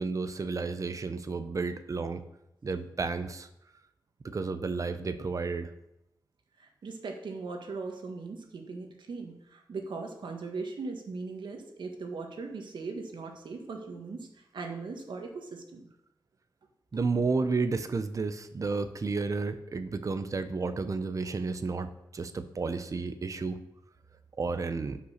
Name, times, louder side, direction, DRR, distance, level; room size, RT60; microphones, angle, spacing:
voice 1, 0.0-2.2 2.6-3.5 4.2-5.7 16.9-23.6 24.4-25.0, right 4 dB, 45° right, 10 dB, 0.8 m, -32 dB
voice 2, 6.6-15.9, right 4 dB, 85° right, 3 dB, 1.7 m, -39 dB
9.8 x 5.9 x 6.5 m, 0.85 s
wide cardioid pair, 100°, 8 cm